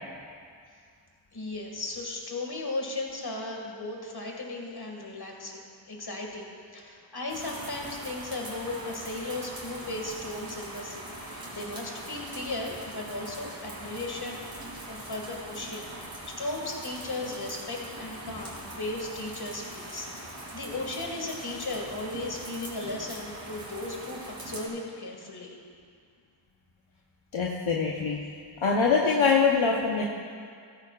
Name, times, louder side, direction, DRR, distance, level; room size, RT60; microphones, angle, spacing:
voice 1, 1.3-5.6 5.9-14.4 14.9-25.6, left 2 dB, 50° left, 0 dB, 2.2 m, -36 dB
sound 1, 7.3-24.7, right 1 dB, 45° right, 3.1 m, -42 dB
voice 2, 27.3-28.2 28.6-30.0, left 5 dB, 70° left, -2 dB, 1.0 m, -23 dB
14.5 x 14.0 x 2.5 m, 2.2 s
wide cardioid pair, 55°, 49 cm